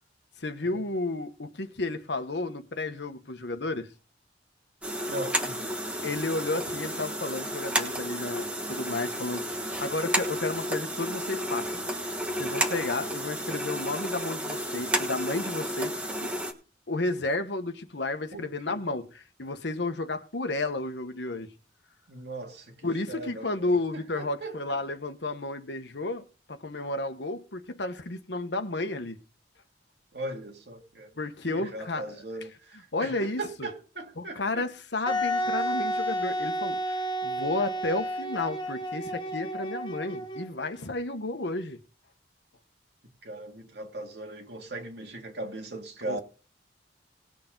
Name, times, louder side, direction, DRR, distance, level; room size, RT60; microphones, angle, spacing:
voice 1, 0.4-3.9 6.0-9.5 9.8-11.7 12.4-16.3 16.9-19.1 19.4-21.5 22.8-29.2 31.2-32.2 32.9-33.7 34.2-36.8 37.2-41.8 46.1-46.2, left 2 dB, 70° left, 1.2 m, -32 dB
sound 1, 4.8-16.5, equal, 5° right, 1.3 m, -32 dB
voice 2, 5.0-5.8 18.3-18.8 22.1-24.8 30.1-31.1 31.4-34.7 43.2-46.2, right 2 dB, 65° right, 2.3 m, -39 dB
Wind instrument woodwind instrument, 35.1-40.6, equal, 25° left, 0.9 m, -31 dB
19.5 x 6.7 x 3.9 m
head